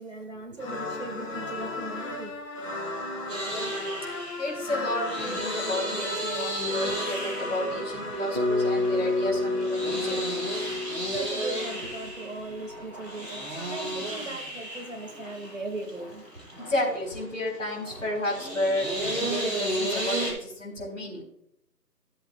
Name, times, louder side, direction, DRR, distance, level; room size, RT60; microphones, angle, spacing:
voice 1, 0.0-2.3 11.1-16.4, right 2 dB, 50° right, 4 dB, 2.1 m, -38 dB
sound 1, 0.6-11.0, left 2 dB, 20° left, 2.8 m, -35 dB
sound 2, 3.3-20.3, right 1 dB, 5° right, 3.0 m, -34 dB
voice 2, 4.4-10.2 16.6-21.2, left 1 dB, 50° left, -1 dB, 4.7 m, -31 dB
Bass guitar, 8.3-12.5, left 2 dB, 30° right, 0.9 m, -29 dB
17.5 x 7.9 x 2.4 m, 0.75 s
figure-of-eight pair, 165°, 49 cm